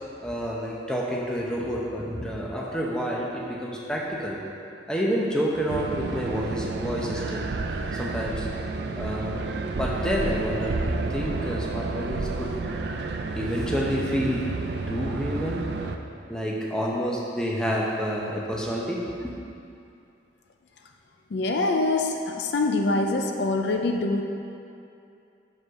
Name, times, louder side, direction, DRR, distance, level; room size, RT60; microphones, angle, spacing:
voice 1, 0.2-4.4 4.9-7.5 7.8-8.5 9.0-9.4 9.8-12.5 13.3-14.4 14.9-15.6 16.3-19.1, equal, 5° left, -4 dB, 0.7 m, -29 dB
sound 1, 5.7-16.0, right 3 dB, 60° right, 0.4 m, -30 dB
voice 2, 21.3-24.2, left 2 dB, 65° left, 3 dB, 0.5 m, -24 dB
6.2 x 5.4 x 4.7 m, 2.6 s
head